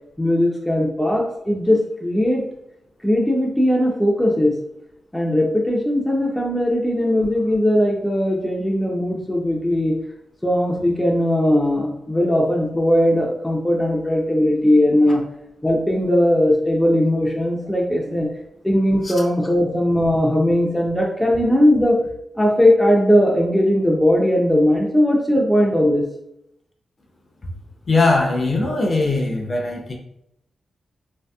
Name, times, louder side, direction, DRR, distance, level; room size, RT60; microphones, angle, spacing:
voice 1, 0.2-2.4 3.0-4.6 5.1-9.9 10.4-15.2 15.6-18.3 18.6-22.0 22.4-26.0, left 1 dB, 5° left, -1 dB, 0.6 m, -18 dB
voice 2, 27.9-29.9, left 3 dB, 45° left, 0 dB, 0.6 m, -21 dB
3.2 x 2.7 x 2.2 m, 0.78 s
cardioid pair, 70°, 0 cm